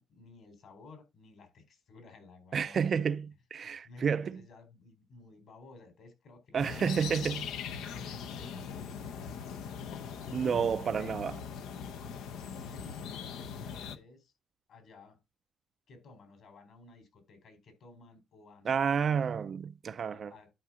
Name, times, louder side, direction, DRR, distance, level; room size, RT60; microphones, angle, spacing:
voice 1, 0.0-2.9 3.6-6.9 7.6-9.8 11.0-11.3 12.5-14.3 14.7-15.2 15.9-19.3 20.1-20.5, left 3 dB, 70° left, 4.2 m, -55 dB
voice 2, 2.5-4.4 6.5-7.5 10.3-11.4 18.6-20.3, right 7 dB, 50° right, 0.4 m, -30 dB
sound 1, 6.6-14.0, left 7 dB, 90° left, 0.7 m, -41 dB
11.0 x 4.8 x 3.8 m
cardioid pair, 90°, 0 cm